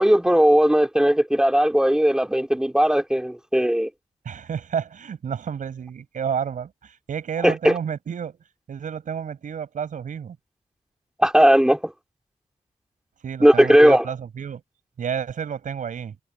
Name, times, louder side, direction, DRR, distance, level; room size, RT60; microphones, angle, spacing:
voice 1, 0.0-3.9 7.4-7.7 11.2-11.9 13.4-14.1, equal, 5° right, 2.7 m, -17 dB
voice 2, 4.2-8.4 8.7-10.4 13.2-14.6 15.0-16.2, right 7 dB, 85° right, 5.4 m, -30 dB
wide cardioid pair, 130°, 13 cm